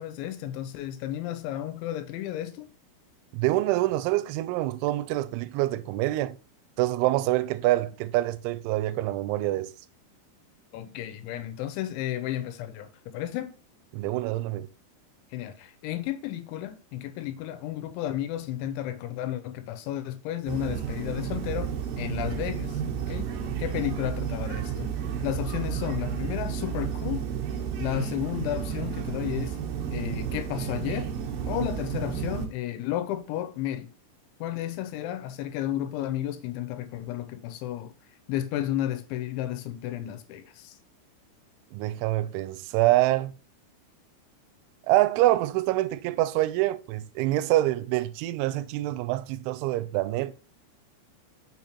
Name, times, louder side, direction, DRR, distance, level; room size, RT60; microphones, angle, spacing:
voice 1, 0.0-2.7 10.7-13.6 15.3-23.3 23.6-24.9 25.2-27.2 27.8-29.6 29.9-31.1 31.5-33.9 34.4-37.9 38.3-40.8, left 12 dB, 85° left, 3.1 m, -32 dB
voice 2, 3.3-6.4 6.8-9.7 13.9-14.7 41.7-43.3 44.9-50.3, right 16 dB, 90° right, 3.0 m, -26 dB
sound 1, 20.5-32.5, right 8 dB, 70° right, 2.6 m, -32 dB
7.1 x 6.1 x 2.9 m
omnidirectional pair, 5.3 m